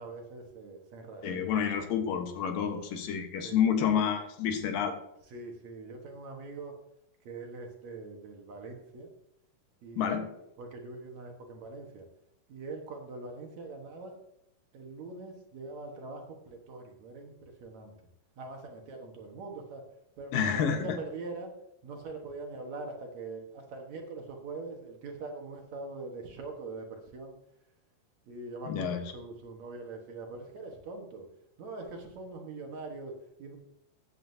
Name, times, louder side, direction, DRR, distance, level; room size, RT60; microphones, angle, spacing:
voice 1, 0.0-1.9 3.4-3.8 5.3-6.8 7.2-9.1 9.8-10.3 10.6-12.1 12.5-14.2 14.7-17.9 18.4-19.8 20.2-21.5 21.8-27.4 28.3-31.3 31.6-33.6, right 3 dB, 60° right, 2 dB, 2.5 m, -43 dB
voice 2, 1.2-5.0 10.0-10.3 20.3-21.0 28.7-29.0, left 8 dB, 85° left, 5 dB, 3.0 m, -29 dB
15.0 x 9.6 x 2.8 m, 0.78 s
omnidirectional pair, 3.9 m